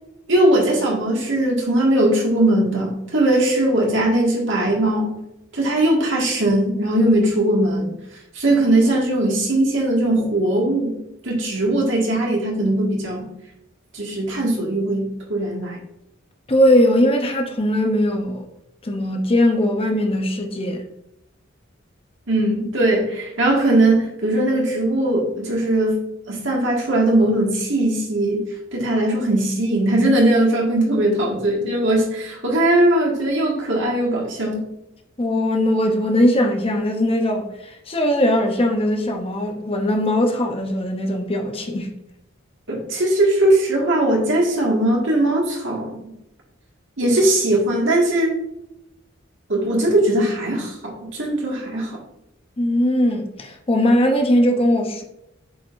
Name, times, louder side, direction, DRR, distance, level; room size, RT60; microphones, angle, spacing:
voice 1, 0.3-5.2 5.5-7.9 8.3-10.9 11.2-13.3 13.9-15.8 22.3-26.0 26.3-34.6 42.7-45.9 47.0-48.4 49.5-52.0, right 1 dB, 70° right, 1.9 m, -19 dB
voice 2, 16.5-18.4 18.8-20.8 35.2-41.9 52.6-55.0, left 1 dB, 30° left, 0.8 m, -20 dB
7.9 x 4.8 x 2.6 m
head